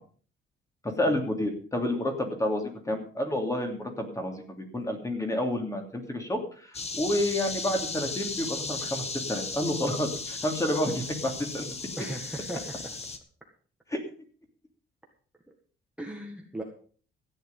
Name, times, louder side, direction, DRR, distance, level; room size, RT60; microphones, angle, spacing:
voice 1, 0.8-11.7 13.9-14.0, left 1 dB, 15° left, 4 dB, 2.9 m, -30 dB
sound 1, 6.7-13.2, left 4 dB, 30° left, 1.5 m, -36 dB
voice 2, 12.0-12.9 16.0-16.6, right 1 dB, 5° right, 1 dB, 1.7 m, -37 dB
14.5 x 9.9 x 5.5 m, 0.43 s
cardioid pair, 145°, 21 cm